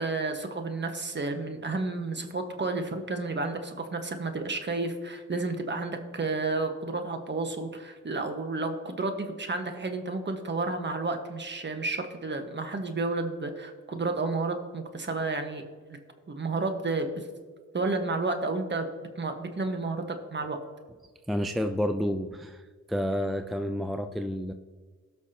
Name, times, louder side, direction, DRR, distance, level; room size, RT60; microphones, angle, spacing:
voice 1, 0.0-15.6 15.9-16.0 16.3-17.3 17.7-18.9 19.1-20.6, right 3 dB, 35° right, 6 dB, 1.4 m, -31 dB
voice 2, 21.3-22.6 22.9-24.5, equal, ahead, 7 dB, 0.4 m, -29 dB
17.5 x 6.1 x 2.9 m, 1.6 s
cardioid pair, 80°, 31 cm